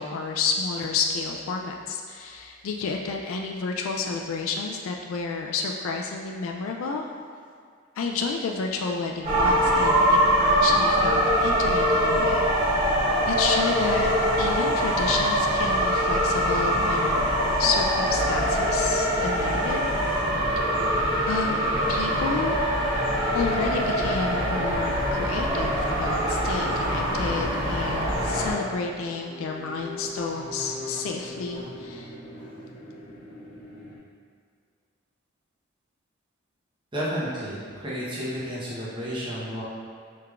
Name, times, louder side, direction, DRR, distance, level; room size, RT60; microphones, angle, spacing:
voice 1, 0.0-7.0 8.0-12.9 13.2-17.3 17.6-19.8 21.3-21.6 21.9-22.6 23.3-32.1, left 4 dB, 80° left, 2 dB, 0.3 m, -30 dB
sound 1, 9.2-28.5, equal, 40° right, 1.2 m, -23 dB
sound 2, 17.1-34.0, left 1 dB, 35° left, 0.8 m, -44 dB
voice 2, 36.9-39.6, equal, 25° right, -8 dB, 0.9 m, -31 dB
4.7 x 3.4 x 2.4 m, 2.1 s
head